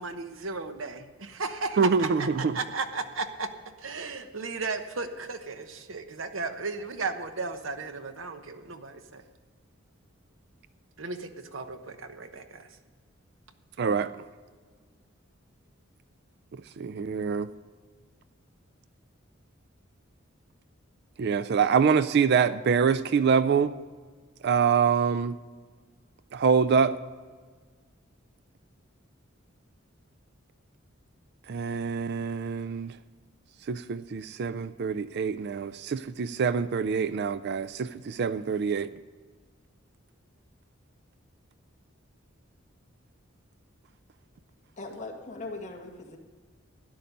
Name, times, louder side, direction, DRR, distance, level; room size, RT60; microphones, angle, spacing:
voice 1, 0.0-3.5 3.8-9.2 11.0-12.7, right 3 dB, 75° right, 8 dB, 1.0 m, -35 dB
voice 2, 1.8-2.5 13.8-14.1 16.8-17.5 21.2-23.7 24.4-25.4 26.3-27.0 31.5-32.9 33.7-38.9, right 6 dB, 55° right, 14 dB, 0.4 m, -25 dB
voice 3, 44.8-46.2, left 2 dB, 35° left, 1 dB, 1.9 m, -39 dB
13.0 x 10.5 x 5.3 m, 1.5 s
head